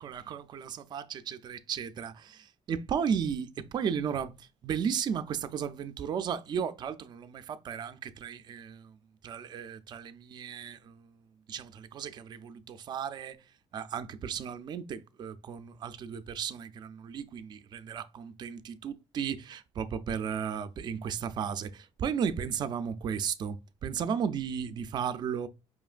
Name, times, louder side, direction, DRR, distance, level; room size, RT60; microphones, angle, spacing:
voice 1, 0.0-8.9 9.2-11.1 11.5-13.4 13.7-23.6 23.8-25.5, right 7 dB, 35° right, 0.4 m, -35 dB
5.0 x 3.1 x 2.4 m
cardioid pair, 170°, 12 cm